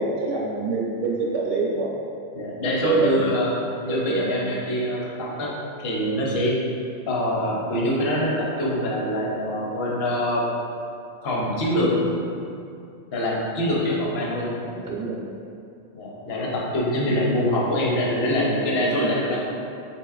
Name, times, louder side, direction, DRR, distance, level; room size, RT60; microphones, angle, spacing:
voice 1, 0.0-1.9 2.8-3.2 3.9-4.3 14.6-15.2 17.1-17.2 18.5-19.1, right 3 dB, 40° right, -4 dB, 0.6 m, -26 dB
voice 2, 2.3-5.5 5.8-6.5 7.1-10.4 11.2-11.9 13.1-14.5 15.9-19.5, left 1 dB, 70° left, -4 dB, 0.9 m, -24 dB
4.6 x 2.9 x 2.3 m, 2.5 s
omnidirectional pair, 1.1 m